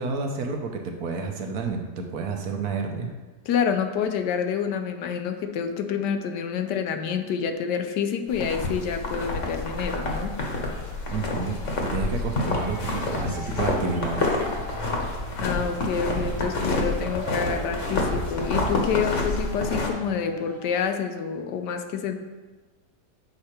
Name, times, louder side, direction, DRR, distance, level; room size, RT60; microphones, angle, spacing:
voice 1, 0.0-3.1 11.1-11.6 11.9-14.3, right 4 dB, 65° right, 3 dB, 1.2 m, -30 dB
voice 2, 3.5-10.4 15.4-22.1, left 7 dB, 80° left, 7 dB, 1.3 m, -28 dB
sound 1, 8.3-19.9, left 2 dB, 50° left, 1.3 m, -28 dB
sound 2, 12.5-20.8, right 1 dB, 35° right, 1.5 m, -41 dB
7.6 x 4.9 x 4.4 m, 1.3 s
omnidirectional pair, 1.8 m